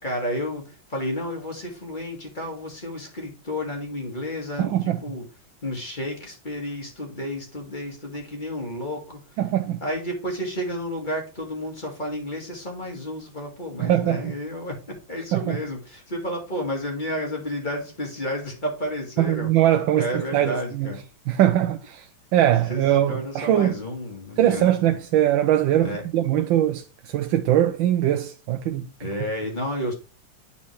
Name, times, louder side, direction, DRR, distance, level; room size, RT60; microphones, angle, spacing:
voice 1, 0.0-5.3 5.6-9.2 9.8-19.5 20.0-21.0 21.6-21.7 22.7-24.7 25.8-26.1 29.0-29.9, equal, 25° left, 2.0 m, -31 dB
voice 2, 4.6-5.0 9.4-9.8 13.8-14.2 15.3-15.6 19.2-20.9 21.3-22.1 22.3-23.8 24.4-26.8 27.1-28.8, right 12 dB, 90° right, 1.4 m, -21 dB
9.9 x 4.3 x 3.2 m
omnidirectional pair, 2.1 m